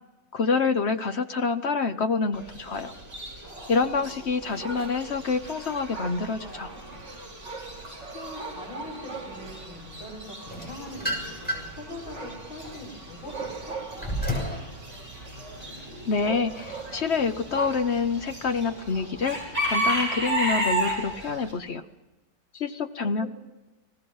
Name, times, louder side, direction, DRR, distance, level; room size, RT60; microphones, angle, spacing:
voice 1, 0.3-2.9 3.7-6.7 16.1-19.4 19.7-21.8 22.5-23.3, left 4 dB, 55° left, 9 dB, 0.8 m, -27 dB
Chicken rooster / Bird, 2.3-21.5, right 1 dB, 30° right, 8.4 m, -35 dB
Dog, 4.4-18.2, right 4 dB, 65° right, 2.7 m, -42 dB
voice 2, 8.0-13.8 23.0-23.3, left 1 dB, 80° left, -2 dB, 6.3 m, -42 dB
sound 1, 10.5-11.8 12.4-14.6, equal, 5° left, 6.4 m, -31 dB
29.5 x 19.0 x 5.5 m, 1.1 s
omnidirectional pair, 2.1 m